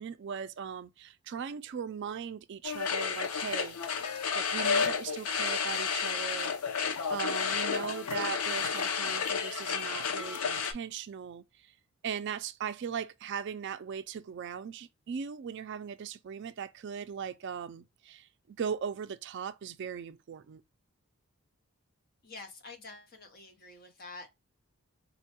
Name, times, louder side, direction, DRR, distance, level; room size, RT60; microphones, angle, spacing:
voice 1, 0.0-3.8 4.3-6.7 7.1-11.7 12.0-20.6, right 7 dB, 50° right, 0.3 m, -39 dB
sound 1, 2.6-10.7, left 6 dB, 90° left, 0.5 m, -31 dB
voice 2, 22.2-24.3, left 3 dB, 45° left, 0.8 m, -47 dB
4.2 x 2.2 x 2.8 m
head